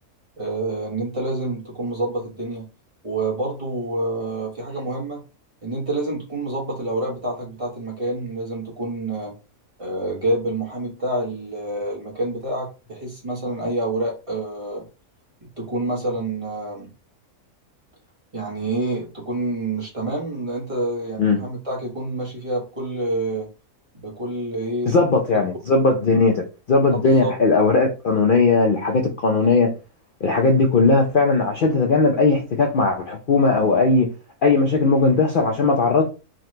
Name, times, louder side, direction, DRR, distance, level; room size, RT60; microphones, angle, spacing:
voice 1, 0.4-2.7 3.0-5.2 5.6-9.3 9.8-14.8 15.4-16.9 18.3-23.5 24.0-25.0 25.3-25.4 27.2-27.3, right 2 dB, 25° right, 1.2 m, -27 dB
voice 2, 24.9-29.7 30.2-34.1 34.4-36.1, left 3 dB, 75° left, 0.4 m, -18 dB
3.8 x 3.0 x 3.2 m
omnidirectional pair, 1.7 m